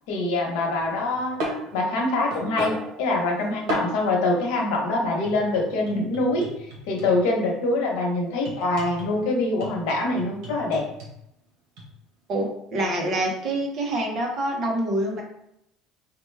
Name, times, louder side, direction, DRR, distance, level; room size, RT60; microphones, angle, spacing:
voice 1, 0.1-1.4 1.7-6.4 6.9-10.8, left 2 dB, 80° left, 0 dB, 1.0 m, -24 dB
sound 1, 0.7-4.1 5.2-7.3 8.4-9.2 9.6-11.1 11.8-11.9, right 1 dB, 70° right, 1.2 m, -35 dB
voice 2, 12.3-15.2, right 1 dB, 35° right, 0 dB, 0.9 m, -26 dB
4.8 x 2.2 x 3.3 m, 0.80 s
cardioid pair, 175°, 0 cm